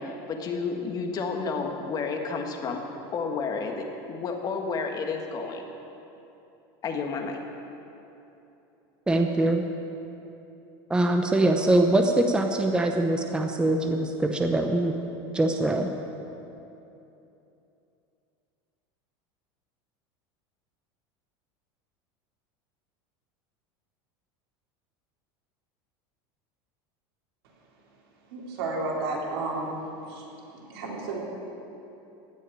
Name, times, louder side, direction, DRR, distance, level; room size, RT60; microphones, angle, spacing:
voice 1, 0.0-2.8 3.1-5.7 6.8-7.4, left 4 dB, 30° left, 3 dB, 1.5 m, -31 dB
voice 2, 9.1-9.6 10.9-14.9 15.3-15.9, right 2 dB, 5° right, 4 dB, 0.7 m, -23 dB
voice 3, 28.3-29.8 30.1-30.2 30.5-31.2, right 3 dB, 85° right, -4 dB, 4.0 m, -32 dB
16.5 x 6.3 x 10.0 m, 2.9 s
supercardioid pair, 140°, 12 cm